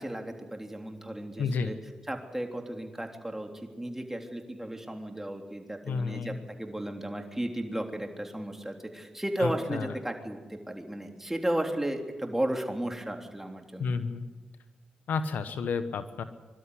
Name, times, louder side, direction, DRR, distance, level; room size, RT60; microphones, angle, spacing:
voice 1, 0.0-1.8 2.1-14.0, right 1 dB, 10° right, 4 dB, 3.5 m, -34 dB
voice 2, 1.4-1.7 5.9-6.4 9.4-9.9 13.8-14.3 15.1-16.2, left 5 dB, 80° left, 11 dB, 1.2 m, -31 dB
23.5 x 12.5 x 9.9 m, 1.3 s
cardioid pair, 55°, 3 cm